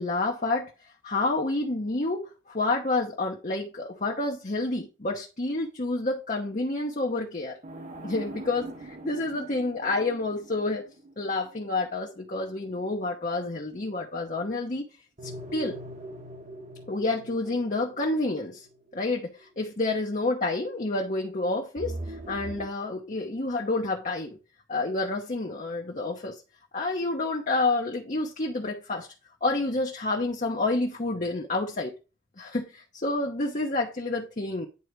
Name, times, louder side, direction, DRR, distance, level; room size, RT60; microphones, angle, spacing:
voice 1, 0.0-7.6 8.0-10.8 11.2-14.9 15.2-15.8 16.9-18.7 18.9-24.4 24.7-26.4 26.7-29.1 29.4-31.9 32.4-34.7, left 2 dB, 40° left, 1.0 m, -29 dB
sound 1, 7.6-12.7 15.2-19.2 21.8-22.7, right 1 dB, 40° right, 1.4 m, -42 dB
9.7 x 4.0 x 4.6 m
head